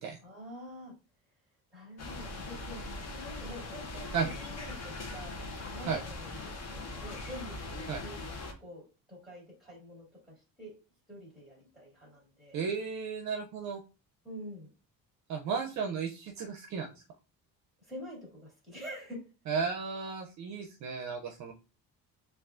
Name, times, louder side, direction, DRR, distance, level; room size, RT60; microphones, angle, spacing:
voice 1, 0.2-0.9 1.7-5.4 5.7-6.4 6.9-8.2 8.6-8.8 9.1-10.1 10.6-10.7 11.1-12.6 14.2-14.7 17.8-19.2, equal, ahead, -2 dB, 2.4 m, -46 dB
sound 1, 2.0-8.5, left 2 dB, 40° left, 0.8 m, -41 dB
voice 2, 12.5-13.8 15.3-16.9 19.5-21.5, right 5 dB, 45° right, 3 dB, 0.5 m, -34 dB
7.0 x 2.4 x 2.4 m, 0.32 s
cardioid pair, 170°, 38 cm